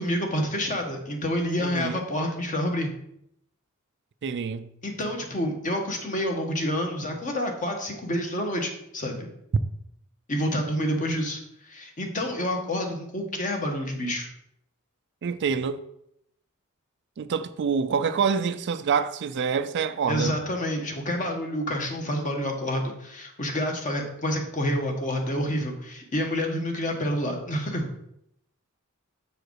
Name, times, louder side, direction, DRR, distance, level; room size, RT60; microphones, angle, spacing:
voice 1, 0.0-2.9 4.8-9.3 10.3-14.3 20.1-27.9, equal, 35° left, 1.2 m, -28 dB
voice 2, 1.6-2.0 4.2-4.7 15.2-15.8 17.2-20.4, right 6 dB, 55° right, 0.4 m, -26 dB
7.0 x 4.9 x 4.6 m
head